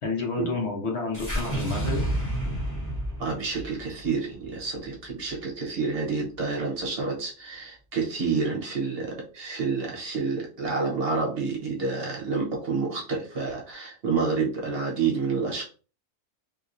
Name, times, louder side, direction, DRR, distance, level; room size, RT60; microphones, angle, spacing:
voice 1, 0.0-2.0, left 3 dB, 55° left, 0 dB, 1.2 m, -29 dB
sound 1, 1.1-5.4, right 1 dB, 15° left, 0.8 m, -31 dB
voice 2, 3.2-15.6, right 4 dB, 50° right, -1 dB, 0.9 m, -29 dB
2.9 x 2.7 x 2.5 m, 0.37 s
omnidirectional pair, 1.4 m